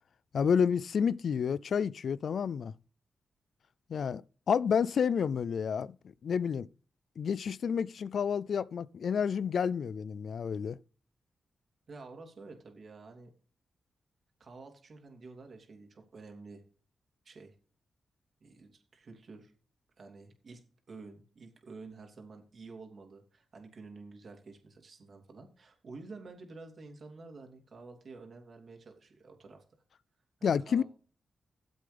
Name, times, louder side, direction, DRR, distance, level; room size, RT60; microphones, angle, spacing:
voice 1, 0.3-2.7 3.9-4.2 4.5-6.0 6.2-6.7 7.2-10.8 30.4-30.8, left 7 dB, 70° left, 0.4 m, -29 dB
voice 2, 11.9-13.3 14.4-16.6 17.2-17.5 18.4-19.5 20.0-20.6 20.9-29.6 30.4-30.8, right 3 dB, 60° right, 2.9 m, -50 dB
14.0 x 7.8 x 3.4 m
supercardioid pair, 50°, 0 cm